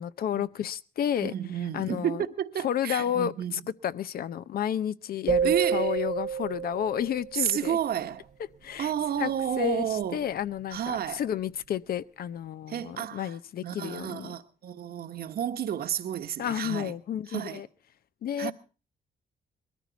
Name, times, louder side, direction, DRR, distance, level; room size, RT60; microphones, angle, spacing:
voice 1, 0.0-1.3 1.7-2.3 2.6-7.8 8.6-8.9 9.2-9.3 9.6-14.3 16.4-17.7 18.2-18.5, left 9 dB, 65° left, 0.7 m, -31 dB
voice 2, 1.2-3.6 5.4-6.0 7.3-8.3 8.8-10.3 10.7-11.2 12.7-13.4 13.6-16.9 17.3-17.6 18.4-18.5, right 9 dB, 65° right, 1.2 m, -31 dB
sound 1, 5.3-7.5, right 7 dB, 45° right, 0.8 m, -28 dB
21.0 x 14.0 x 4.0 m
cardioid pair, 100°, 17 cm